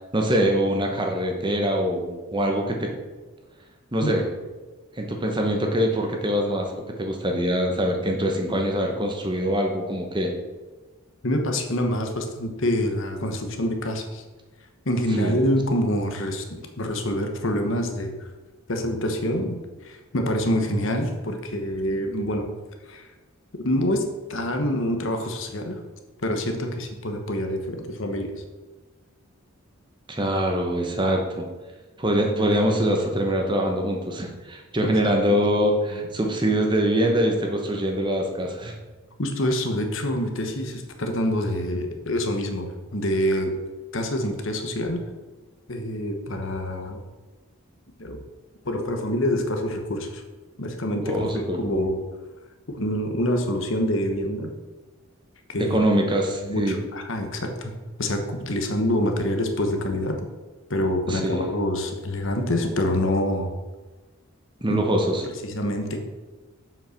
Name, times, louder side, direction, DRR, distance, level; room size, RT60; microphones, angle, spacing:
voice 1, 0.1-2.9 3.9-4.2 5.0-6.7 7.0-10.3 15.2-15.4 30.1-31.5 32.0-38.7 51.1-51.9 55.6-56.8 61.1-61.4 64.6-65.2, equal, 20° right, 2 dB, 1.0 m, -24 dB
voice 2, 11.2-14.2 14.8-18.1 18.7-19.6 19.8-22.5 22.9-23.1 23.6-24.0 24.3-25.8 26.2-28.3 34.8-34.9 35.3-35.4 35.9-36.0 39.2-43.5 43.9-45.0 45.7-47.0 48.0-48.2 48.6-50.2 50.6-52.0 52.7-54.5 55.5-55.8 56.4-57.7 58.0-60.3 60.7-63.5 64.7-64.8 65.4-66.0, left 1 dB, 60° left, 4 dB, 1.2 m, -26 dB
7.5 x 5.6 x 5.9 m, 1.2 s
head